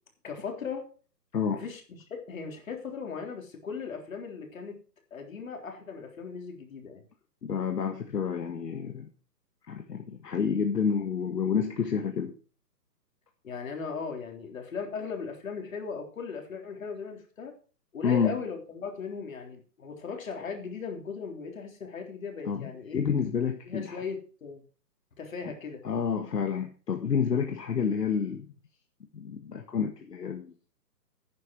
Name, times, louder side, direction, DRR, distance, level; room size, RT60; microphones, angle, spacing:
voice 1, 0.2-0.9 1.5-4.8 5.1-7.0 13.4-17.5 17.9-23.0 23.7-24.6 25.2-25.8, left 5 dB, 55° left, 3 dB, 3.6 m, -38 dB
voice 2, 7.4-9.1 9.7-12.3 18.0-18.4 22.4-24.0 25.8-28.5 29.1-30.5, left 6 dB, 75° left, 4 dB, 1.7 m, -29 dB
11.0 x 9.7 x 4.6 m, 0.39 s
hypercardioid pair, 160°, 50 cm